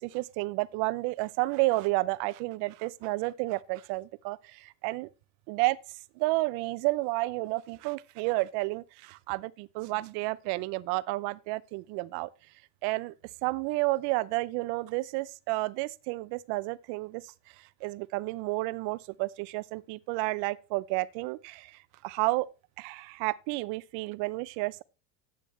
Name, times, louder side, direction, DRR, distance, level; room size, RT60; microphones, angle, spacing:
voice 1, 0.0-5.1 5.5-5.8 6.2-12.3 12.8-13.1 13.4-22.5 22.8-24.8, right 21 dB, 60° right, 0.8 m, -31 dB
12.0 x 9.0 x 3.2 m
supercardioid pair, 120°, 45 cm